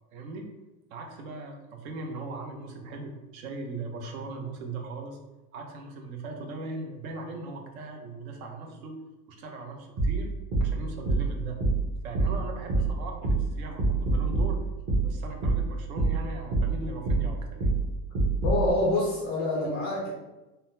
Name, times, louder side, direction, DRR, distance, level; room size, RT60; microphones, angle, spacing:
voice 1, 0.1-0.5 0.9-5.2 5.5-9.0 9.3-10.3 10.6-11.6 12.0-14.6 15.0-17.7, right 3 dB, 65° right, 3 dB, 0.8 m, -39 dB
sound 1, 10.0-18.7, right 3 dB, 30° right, 0.8 m, -27 dB
voice 2, 18.4-20.1, left 2 dB, 25° left, -5 dB, 0.3 m, -26 dB
3.7 x 2.1 x 2.6 m, 1.1 s
supercardioid pair, 145°, 45 cm